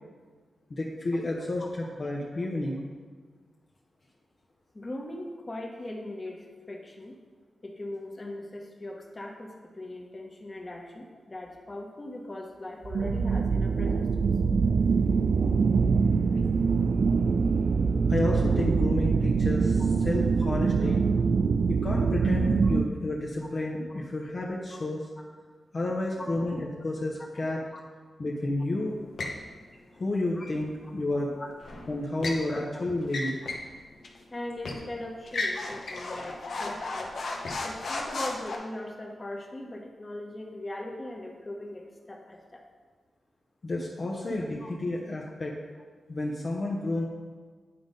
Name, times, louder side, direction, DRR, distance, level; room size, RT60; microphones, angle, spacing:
voice 1, 0.7-2.9 18.1-21.0 21.7-25.0 25.7-27.6 28.2-29.0 30.0-31.3 31.9-33.4 43.6-45.5 46.1-47.1, left 2 dB, 50° left, -3 dB, 1.0 m, -31 dB
voice 2, 4.7-7.1 7.6-14.3 19.8-19.9 23.9-24.0 26.2-26.3 27.7-27.8 29.9-30.0 30.4-30.5 31.4-31.5 32.5-32.6 34.3-37.1 37.6-42.6 44.6-44.7, left 1 dB, 30° left, 1 dB, 1.3 m, -40 dB
sound 1, 12.8-22.8, right 5 dB, 65° right, 0.3 m, -24 dB
sound 2, 29.2-29.4 31.6-32.4 33.0-33.7 34.0-34.2 34.6-34.9 35.3-38.6, left 2 dB, 75° left, 1.0 m, -34 dB
9.7 x 3.9 x 5.3 m, 1.5 s
cardioid pair, 65°, 0 cm